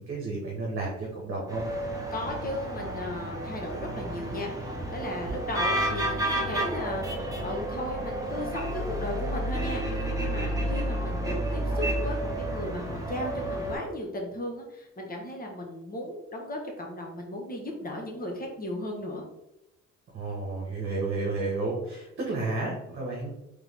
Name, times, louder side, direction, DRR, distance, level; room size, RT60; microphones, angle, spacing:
voice 1, 0.0-1.6 20.1-23.3, right 3 dB, 45° right, -3 dB, 1.3 m, -32 dB
sound 1, 1.5-13.8, right 1 dB, 10° right, 1.3 m, -31 dB
voice 2, 2.1-19.2, left 1 dB, 30° left, 1 dB, 1.3 m, -36 dB
3.6 x 3.4 x 3.5 m, 0.89 s
cardioid pair, 90°, 30 cm